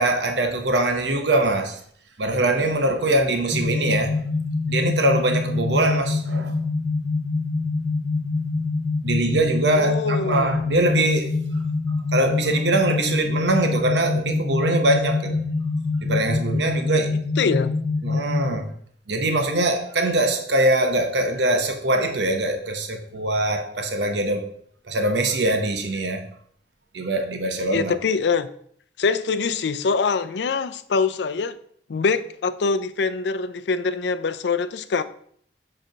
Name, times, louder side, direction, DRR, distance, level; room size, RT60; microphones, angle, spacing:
voice 1, 0.0-1.8 2.2-4.2 4.7-6.6 9.0-11.4 12.1-15.4 16.0-17.2 18.0-18.7 19.1-24.5 24.9-26.2 26.9-27.9, right 1 dB, 85° right, 1.0 m, -22 dB
sound 1, 3.5-18.5, left 3 dB, 5° left, 0.5 m, -25 dB
voice 2, 9.7-10.6 17.4-17.7 27.7-28.5 29.0-31.5 31.9-35.0, left 4 dB, 80° left, 0.5 m, -24 dB
7.5 x 3.3 x 5.1 m
head